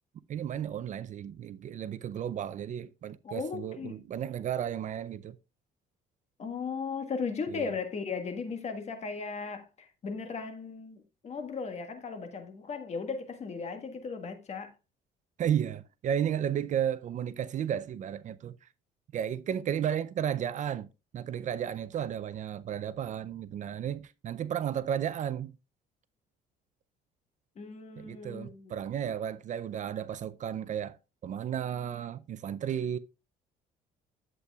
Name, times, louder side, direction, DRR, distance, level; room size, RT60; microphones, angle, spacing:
voice 1, 0.3-5.3 7.5-7.7 15.4-18.5 19.1-20.9 21.1-25.6 28.0-31.0 31.2-33.0, right 9 dB, 45° right, 0.5 m, -33 dB
voice 2, 3.2-3.9 6.4-14.7 27.6-28.7, left 5 dB, 40° left, 1.6 m, -37 dB
11.0 x 8.2 x 2.4 m
cardioid pair, 110°, 17 cm